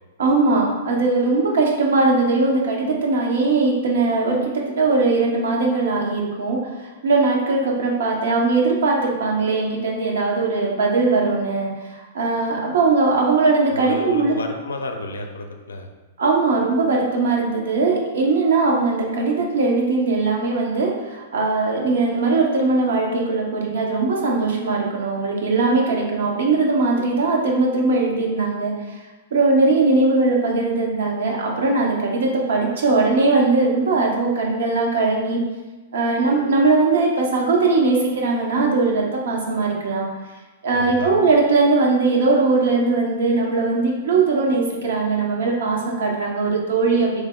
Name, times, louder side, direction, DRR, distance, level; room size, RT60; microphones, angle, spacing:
voice 1, 0.2-6.6 7.0-11.7 12.1-14.4 16.2-28.7 29.3-35.4 35.9-40.1 40.6-47.2, right 3 dB, 70° right, -1 dB, 0.7 m, -20 dB
voice 2, 13.7-15.9 40.7-41.2, left 2 dB, 80° left, 4 dB, 0.4 m, -31 dB
3.2 x 2.0 x 3.5 m, 1.2 s
hypercardioid pair, 110°, 0 cm